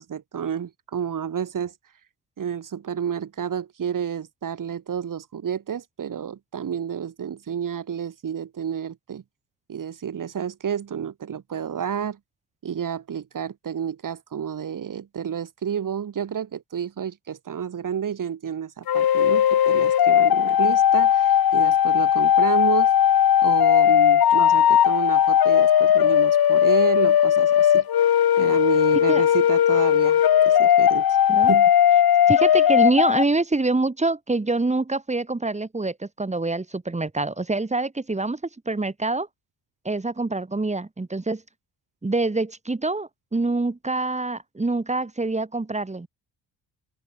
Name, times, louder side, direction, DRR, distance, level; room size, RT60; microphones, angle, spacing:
voice 1, 0.0-1.7 2.4-9.2 9.7-12.2 12.6-22.9 23.4-27.8 28.4-31.1 31.4-31.7, right 8 dB, 50° right, 7.6 m, -30 dB
sound 1, 18.9-33.2, left 10 dB, 55° left, 3.9 m, -18 dB
voice 2, 32.3-38.4 38.7-39.3 39.8-41.4 42.0-46.1, right 2 dB, 15° right, 7.6 m, -25 dB
open air
cardioid pair, 125°, 42 cm